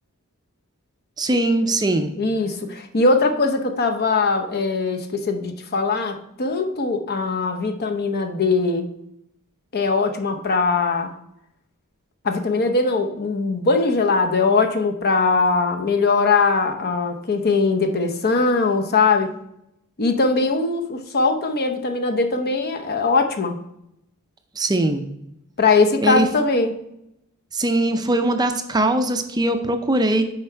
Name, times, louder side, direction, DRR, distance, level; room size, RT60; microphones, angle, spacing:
voice 1, 1.2-2.1 24.6-25.1 26.0-26.3 27.5-30.2, right 1 dB, 20° right, 7 dB, 0.5 m, -21 dB
voice 2, 2.2-8.9 9.7-11.1 12.2-19.3 20.0-23.6 25.6-26.7, left 3 dB, 45° left, 5 dB, 0.8 m, -21 dB
7.5 x 4.7 x 4.5 m, 0.80 s
head